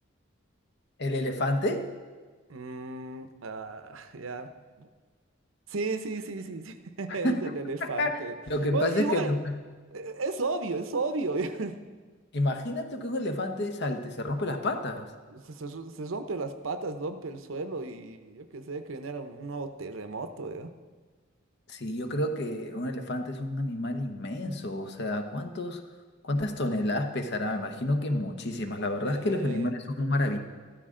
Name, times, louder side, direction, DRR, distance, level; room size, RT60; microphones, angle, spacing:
voice 1, 1.0-1.9 7.2-7.4 7.8-8.2 8.5-9.5 12.3-15.1 21.7-25.8 26.2-30.4, left 1 dB, 55° left, 6 dB, 1.0 m, -29 dB
voice 2, 2.5-4.5 4.8-4.9 5.7-8.4 8.7-9.3 9.9-11.8 15.3-20.7 29.0-29.7, right 3 dB, 80° right, 9 dB, 0.8 m, -34 dB
13.5 x 13.0 x 3.7 m, 1.4 s
head